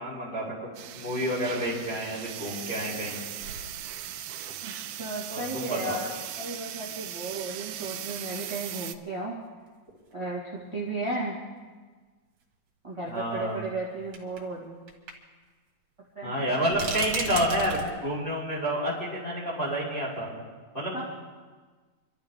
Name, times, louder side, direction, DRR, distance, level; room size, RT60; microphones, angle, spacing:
voice 1, 0.0-3.2 5.3-6.0 13.0-13.6 16.2-20.3 20.7-21.0, equal, 15° left, -6 dB, 6.1 m, -29 dB
sound 1, 0.8-9.0, right 11 dB, 80° right, 2.3 m, -38 dB
sound 2, 3.0-3.1 3.4-4.4 5.0-5.1 6.9-7.0 8.3-8.4 8.5-8.6 9.7-9.8 10.1-10.2 11.6-11.7 13.2-13.3 14.1-14.5 14.9-15.1 15.4-15.5 16.7-17.9, right 4 dB, 50° right, 2.9 m, -36 dB
voice 2, 4.6-6.1 6.4-9.3 10.1-11.4 12.8-14.8 16.1-16.6 20.9-21.0, right 2 dB, 10° right, -7 dB, 1.6 m, -34 dB
27.5 x 13.0 x 3.7 m, 1.4 s
omnidirectional pair, 4.2 m